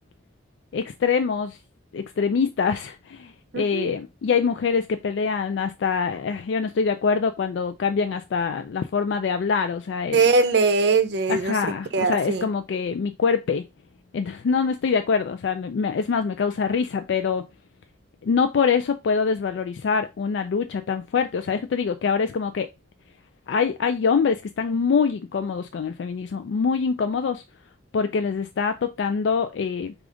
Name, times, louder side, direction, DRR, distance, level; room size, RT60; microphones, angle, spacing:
voice 1, 0.7-1.6 1.9-10.2 11.3-13.6 14.1-17.4 18.2-22.7 23.5-27.4 27.9-29.9, left 5 dB, 80° left, 0.4 m, -24 dB
voice 2, 3.5-3.9 10.1-11.6 11.9-12.5, right 4 dB, 65° right, 0.6 m, -21 dB
4.9 x 2.4 x 3.8 m
head